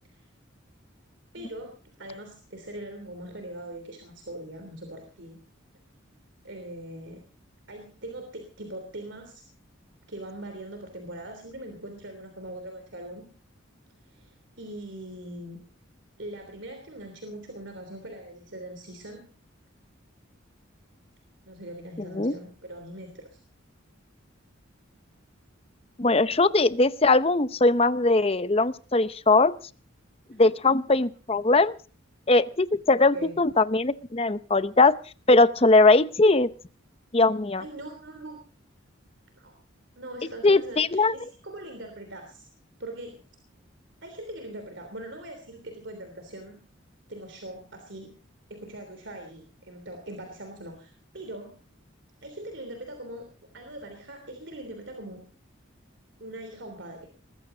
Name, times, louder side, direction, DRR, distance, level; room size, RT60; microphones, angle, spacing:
voice 1, 1.3-5.4 6.4-7.2 7.7-9.5 10.1-13.3 14.0-15.6 16.2-19.2 21.4-23.3 30.3-30.4 33.1-33.4 37.6-38.4 39.4-39.5 40.0-42.5 42.8-43.2 44.0-46.6 47.1-48.1 48.5-51.5 52.2-53.2 53.5-55.2 56.2-57.1, right 1 dB, 60° right, 5 dB, 3.3 m, -41 dB
voice 2, 26.0-29.5 30.4-31.7 32.3-34.9 35.3-36.5 37.1-37.6 40.4-41.1, left 3 dB, 30° left, 14 dB, 0.7 m, -20 dB
21.0 x 15.0 x 3.9 m, 0.38 s
head